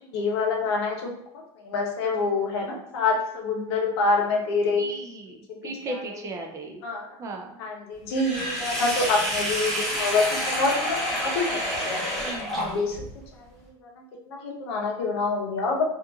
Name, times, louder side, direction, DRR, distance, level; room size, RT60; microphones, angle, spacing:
voice 1, 0.1-1.1 1.6-4.9 5.5-6.3 6.8-7.1 7.6-12.0 12.6-13.0 13.8-13.9 14.3-15.8, left 3 dB, 85° left, 0 dB, 0.8 m, -26 dB
voice 2, 4.8-6.8 7.2-7.6 8.7-8.9 9.9-10.0 12.2-12.8, right 2 dB, 25° right, 3 dB, 0.3 m, -37 dB
Sink (filling or washing), 8.1-13.1, equal, ahead, 0.8 m, -28 dB
2.7 x 2.5 x 2.3 m, 0.76 s
supercardioid pair, 145°, 13 cm